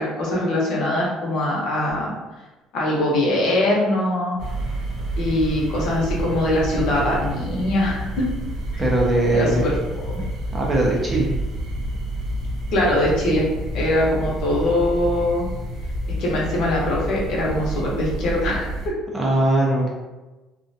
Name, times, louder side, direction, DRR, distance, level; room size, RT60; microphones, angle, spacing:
voice 1, 0.0-2.1 2.7-4.4 5.2-8.3 8.7-8.8 9.3-9.7 12.7-13.5 13.7-15.5 16.2-18.7, left 1 dB, 55° left, -4 dB, 0.7 m, -22 dB
sound 1, 4.4-18.9, right 1 dB, 70° right, 0.7 m, -29 dB
voice 2, 8.8-9.6 10.5-11.3 19.1-19.9, right 1 dB, 15° right, -3 dB, 0.4 m, -20 dB
2.4 x 2.1 x 2.6 m, 1.1 s
cardioid pair, 175°, 0 cm